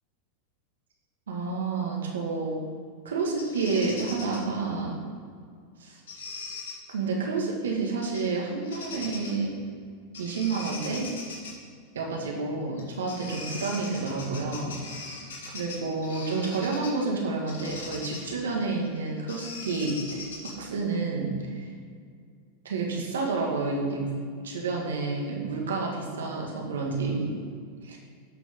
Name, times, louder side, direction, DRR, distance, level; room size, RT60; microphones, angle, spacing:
voice 1, 1.3-2.6 3.0-5.0 5.8-6.0 6.9-9.5 10.2-11.1 11.9-14.7 15.5-21.7 22.6-24.1 24.4-27.3 27.8-28.0, right 3 dB, 80° right, 0 dB, 1.8 m, -29 dB
Bird vocalization bird call bird song, 3.4-4.4 6.1-6.7 8.0-8.3 8.6-9.4 10.1-11.5 12.8-12.9 13.1-17.0 17.5-20.7, left 3 dB, 75° left, 2.3 m, -40 dB
10.0 x 6.2 x 3.8 m, 2.1 s
hypercardioid pair, 100°, 0 cm